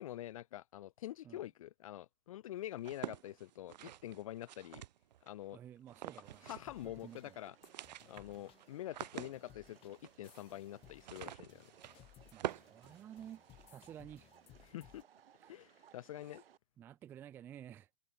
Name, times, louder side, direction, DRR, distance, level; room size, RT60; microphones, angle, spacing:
voice 1, 0.0-4.8 5.2-5.6 6.4-7.5 8.1-11.6 14.7-15.0 15.5-16.4, left 13 dB, 35° left, 0.7 m, -46 dB
sound 1, 2.8-5.3 5.9-6.8 7.1-7.2 7.5-13.6, right 12 dB, 45° right, 0.9 m, -47 dB
voice 2, 5.5-6.5 6.8-7.4 12.3-14.3 15.4-15.6 16.2-16.4 16.8-17.9, right 10 dB, 5° right, 0.5 m, -53 dB
sound 2, 5.9-16.6, right 9 dB, 65° right, 1.4 m, -65 dB
sound 3, 6.2-15.0, left 15 dB, 15° left, 2.3 m, -63 dB
hypercardioid pair, 155°, 31 cm